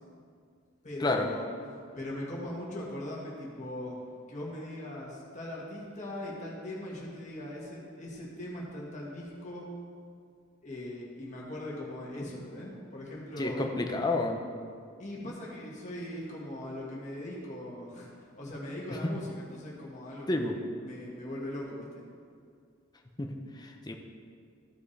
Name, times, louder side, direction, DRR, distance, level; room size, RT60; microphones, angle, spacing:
voice 1, 0.8-1.4 1.9-4.0 4.3-9.7 10.6-13.6 15.0-18.1 18.4-20.5 20.8-22.0, left 1 dB, 35° left, -4 dB, 1.6 m, -40 dB
voice 2, 13.4-14.4 20.3-20.5 23.2-23.3 23.6-23.9, left 2 dB, 20° left, 3 dB, 0.7 m, -29 dB
14.5 x 5.2 x 3.3 m, 2.2 s
head